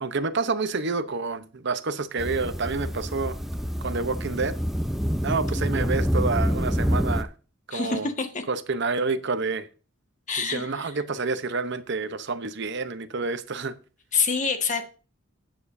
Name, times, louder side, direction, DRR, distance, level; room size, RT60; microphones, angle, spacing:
voice 1, 0.0-3.4 3.8-4.6 5.2-7.3 7.7-8.1 8.5-9.7 10.4-13.8, right 4 dB, 60° right, 0.8 m, -28 dB
sound 1, 2.2-7.2, equal, ahead, 0.6 m, -27 dB
voice 2, 7.7-8.4 10.3-10.9 14.1-14.8, left 5 dB, 35° left, 1.6 m, -26 dB
13.5 x 9.2 x 2.7 m
head